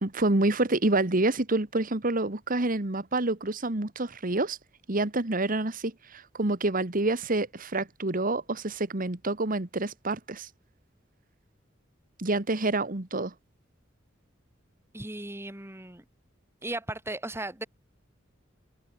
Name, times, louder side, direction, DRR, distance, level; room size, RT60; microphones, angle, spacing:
voice 1, 0.0-4.6 4.9-10.5 12.2-13.3, right 2 dB, 45° right, 1.7 m, -27 dB
voice 2, 14.9-16.0 16.6-17.7, right 1 dB, 15° right, 2.4 m, -36 dB
open air
head